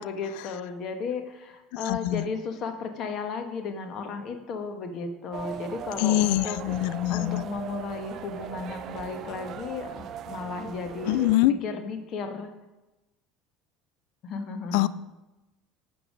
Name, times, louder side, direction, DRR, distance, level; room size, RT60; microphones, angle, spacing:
voice 1, 0.0-12.5 14.2-14.9, left 4 dB, 45° left, 7 dB, 1.4 m, -35 dB
voice 2, 1.9-2.2 6.0-7.4 11.1-11.5 14.7-14.9, left 15 dB, 60° left, 16 dB, 0.4 m, -23 dB
sound 1, 5.3-11.4, right 9 dB, 45° right, 0.5 m, -39 dB
11.5 x 7.0 x 5.0 m, 1.0 s
figure-of-eight pair, 70°, 0 cm